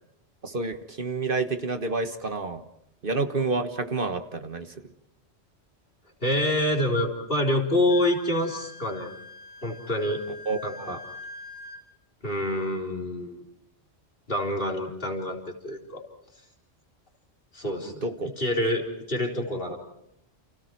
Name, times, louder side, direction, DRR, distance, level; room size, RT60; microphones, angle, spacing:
voice 1, 0.4-2.6 3.0-4.7 10.5-10.9 18.0-18.3, right 3 dB, 55° right, 8 dB, 1.5 m, -29 dB
voice 2, 6.2-9.1 9.6-10.2 10.6-11.0 12.2-13.4 14.3-16.0 17.5-19.8, left 1 dB, 55° left, 0 dB, 4.1 m, -27 dB
Wind instrument woodwind instrument, 7.9-11.8, left 2 dB, 85° right, 4.9 m, -44 dB
30.0 x 29.0 x 4.6 m, 0.80 s
omnidirectional pair, 1.1 m